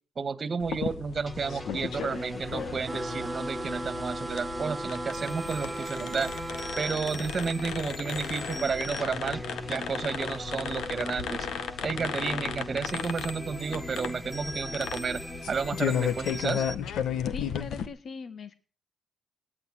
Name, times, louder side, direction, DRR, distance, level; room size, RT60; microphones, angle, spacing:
voice 1, 0.2-6.3 6.8-9.4 9.7-11.5 11.8-15.2 15.5-16.6, right 5 dB, 40° right, 13 dB, 1.9 m, -32 dB
sound 1, 0.6-17.9, left 8 dB, 70° left, 1.8 m, -35 dB
sound 2, 1.3-16.7, equal, 10° left, 2.2 m, -40 dB
sound 3, 2.8-7.0, right 2 dB, 10° right, 2.5 m, -37 dB
voice 2, 17.0-18.6, left 5 dB, 50° left, 11 dB, 1.9 m, -41 dB
19.0 x 9.8 x 6.5 m, 0.39 s
cardioid pair, 90°, 0 cm